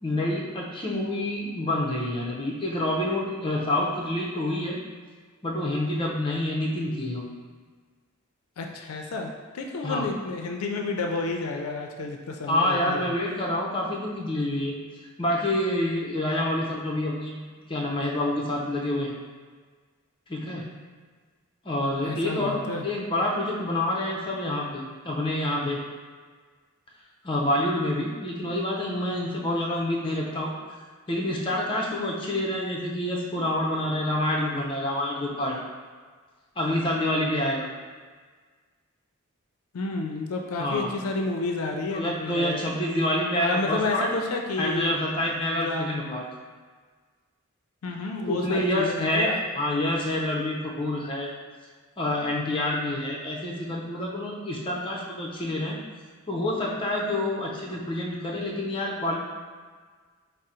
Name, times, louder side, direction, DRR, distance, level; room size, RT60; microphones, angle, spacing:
voice 1, 0.0-4.8 5.4-7.2 9.8-10.0 12.5-14.8 15.2-19.1 20.3-20.7 21.6-25.8 27.2-30.5 31.1-35.6 36.6-37.7 40.6-40.9 41.9-44.1 44.6-46.2 48.3-51.3 52.0-55.8 56.3-59.2, left 1 dB, 25° left, -3 dB, 0.5 m, -27 dB
voice 2, 8.6-13.1 22.0-22.8 39.7-42.6 43.4-45.0 45.5-45.9 47.8-49.4, left 3 dB, 85° left, 2 dB, 0.4 m, -30 dB
3.7 x 2.0 x 4.2 m, 1.5 s
head